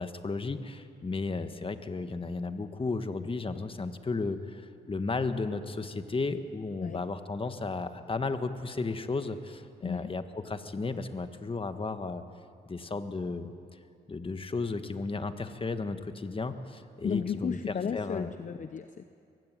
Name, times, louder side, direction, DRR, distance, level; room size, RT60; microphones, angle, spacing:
voice 1, 0.0-12.2 12.7-13.5 14.1-17.6 17.9-18.3, left 3 dB, 30° left, 9 dB, 1.6 m, -34 dB
voice 2, 17.0-19.0, left 7 dB, 45° left, 10 dB, 0.9 m, -34 dB
22.0 x 16.0 x 9.5 m, 2.4 s
cardioid pair, 65°, 18 cm